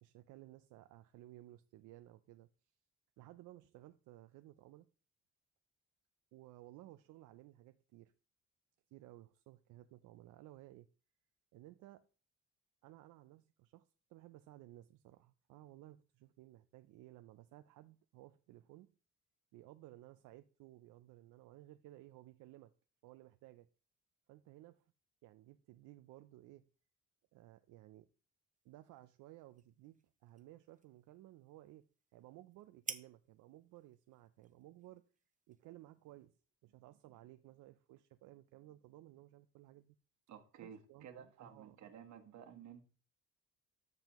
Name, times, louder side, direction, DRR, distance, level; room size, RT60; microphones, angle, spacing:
voice 1, 0.0-2.5 3.2-4.9 6.3-8.1 8.9-10.9 11.5-12.1 12.8-18.9 19.5-22.7 23.0-23.7 24.3-24.8 25.2-26.7 27.3-28.1 28.6-35.0 35.5-40.0 40.6-41.8, right 15 dB, 90° right, 0.5 m, -58 dB
sound 1, 28.5-36.3, right 5 dB, 25° right, 0.7 m, -55 dB
voice 2, 40.3-42.8, right 8 dB, 70° right, 1.4 m, -54 dB
13.0 x 5.3 x 3.0 m
cardioid pair, 90°, 30 cm